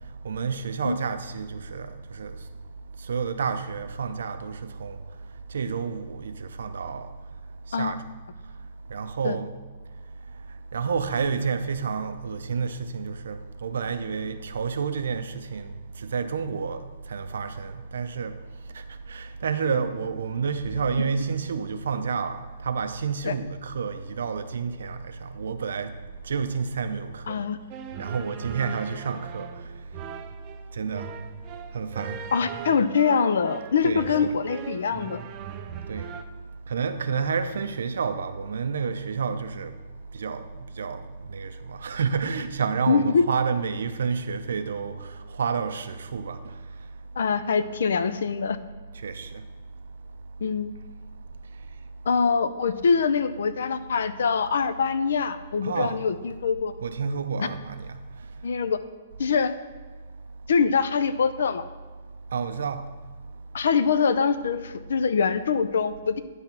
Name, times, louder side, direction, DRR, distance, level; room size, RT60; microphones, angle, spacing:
voice 1, 0.2-2.4 3.0-5.0 5.5-7.1 7.7-8.0 8.9-9.5 10.7-18.3 18.7-26.0 26.2-27.4 28.0-29.5 30.7-31.1 31.7-32.2 33.8-34.4 35.9-36.1 36.7-39.7 40.1-41.0 41.3-46.5 49.0-49.4 55.6-56.0 56.8-58.0 62.3-62.9, right 5 dB, 80° right, 0.6 m, -30 dB
voice 2, 27.3-27.6 32.3-35.2 42.9-43.2 47.2-48.6 50.4-50.7 52.1-56.7 57.4-57.5 58.4-58.8 59.2-59.5 60.5-61.6 63.5-66.2, left 5 dB, 70° left, 0.5 m, -24 dB
Sad Hero, 27.7-36.2, right 8 dB, 20° right, 0.4 m, -39 dB
10.5 x 3.5 x 5.7 m
hypercardioid pair, 175°, 0 cm